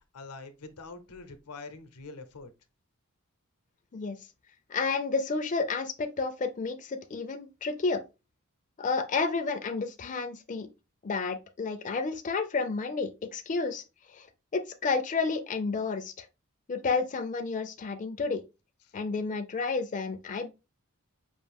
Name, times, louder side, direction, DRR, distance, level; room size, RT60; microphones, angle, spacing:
voice 1, 0.1-2.5 18.8-18.9, left 3 dB, 85° left, 0.8 m, -45 dB
voice 2, 4.7-8.0 8.8-10.7 11.0-13.8 14.1-14.3 14.5-16.3 16.7-18.4 18.9-20.5, left 4 dB, 35° left, 0.4 m, -31 dB
5.3 x 2.6 x 3.4 m
head